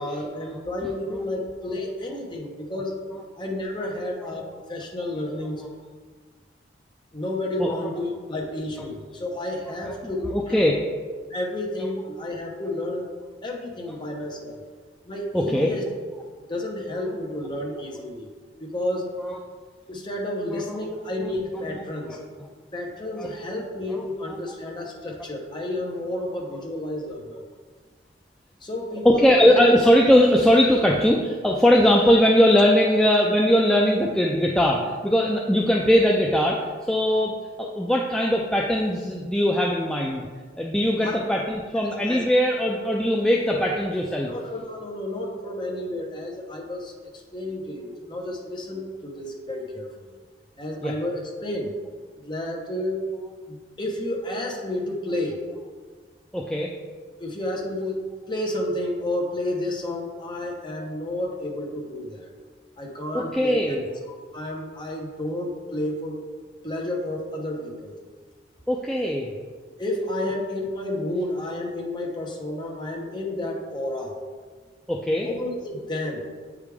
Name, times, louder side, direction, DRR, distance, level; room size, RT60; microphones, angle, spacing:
voice 1, 0.0-3.0 3.4-4.4 4.7-5.6 7.1-10.6 11.3-13.1 13.4-14.6 15.1-15.8 16.5-18.3 18.6-19.1 19.9-22.2 22.7-27.4 28.6-29.6 41.0-41.2 41.8-42.2 44.2-46.9 47.3-49.9 50.6-51.7 52.2-53.0 53.5-55.4 57.2-62.3 62.8-63.8 64.3-66.2 66.6-68.0 69.8-74.1 75.2-76.2, left 1 dB, 25° left, -1 dB, 1.0 m, -31 dB
voice 2, 10.3-10.7 15.3-15.7 19.2-19.4 20.5-20.8 21.2-21.3 21.6-22.2 23.2-23.3 23.9-24.4 29.0-36.6 36.9-40.3 40.6-44.3 50.8-50.9 56.3-56.7 63.1-63.8 68.7-69.3 74.9-75.3, equal, 5° left, -2 dB, 0.4 m, -20 dB
8.2 x 4.9 x 3.5 m, 1.5 s
head